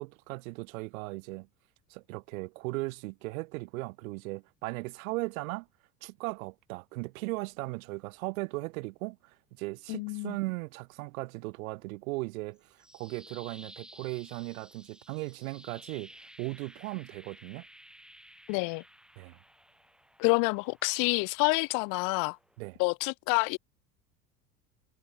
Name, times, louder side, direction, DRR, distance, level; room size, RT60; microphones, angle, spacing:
voice 1, 0.0-1.5 1.9-5.7 6.0-17.7 19.2-19.4 22.6-22.8, right 23 dB, 55° right, 1.8 m, -37 dB
voice 2, 9.9-10.4 18.5-18.8 20.2-22.4 22.8-23.6, left 34 dB, 40° left, 0.7 m, -28 dB
sound 1, 12.6-22.6, equal, ahead, 4.0 m, -55 dB
figure-of-eight pair, 70°, 49 cm